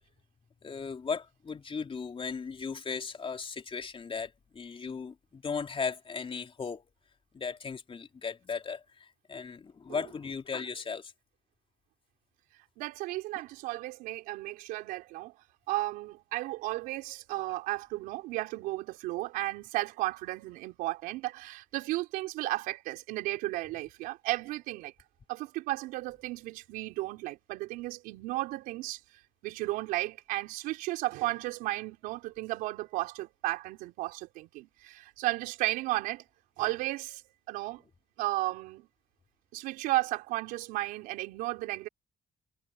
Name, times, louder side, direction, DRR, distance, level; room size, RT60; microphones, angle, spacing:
voice 1, 0.6-6.8 7.3-11.1, left 5 dB, 40° left, 3.5 m, -37 dB
voice 2, 12.8-15.3 15.7-24.9 25.3-29.0 29.4-36.2 36.6-37.2 37.5-37.8 38.2-38.9 39.5-41.9, right 18 dB, 90° right, 5.0 m, -34 dB
supercardioid pair, 70°, 14 cm